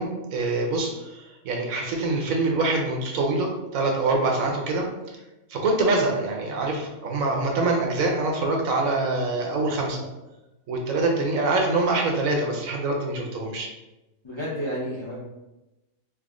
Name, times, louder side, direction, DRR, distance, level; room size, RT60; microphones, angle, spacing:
voice 1, 0.0-4.9 5.5-10.0 10.7-13.7, right 2 dB, 75° right, 1 dB, 1.0 m, -25 dB
voice 2, 14.2-15.2, equal, 35° left, -7 dB, 0.5 m, -31 dB
3.5 x 2.1 x 3.5 m, 1.0 s
omnidirectional pair, 1.5 m